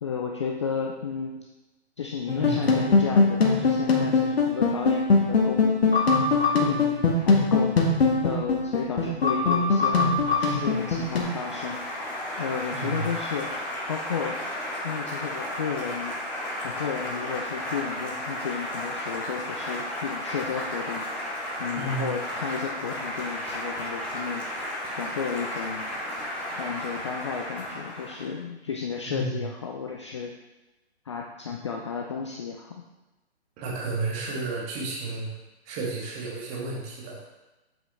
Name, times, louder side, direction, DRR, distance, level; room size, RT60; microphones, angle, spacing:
voice 1, 0.0-1.5 2.0-6.0 6.6-7.7 8.2-11.8 12.4-13.5 13.9-14.4 14.8-16.2 16.6-21.1 21.6-24.5 25.0-25.8 26.6-30.3 31.1-32.8, left 6 dB, 25° left, 0 dB, 0.4 m, -33 dB
sound 1, 2.3-11.2, left 4 dB, 65° left, 1.6 m, -22 dB
voice 2, 2.4-2.7 12.7-13.1 21.8-22.1 29.1-29.5 33.6-35.3 35.7-37.2, right 3 dB, 20° right, -4 dB, 1.8 m, -32 dB
Applause, 9.4-28.3, left 1 dB, 5° left, 1.9 m, -34 dB
7.7 x 5.8 x 3.5 m, 1.1 s
figure-of-eight pair, 135°, 34 cm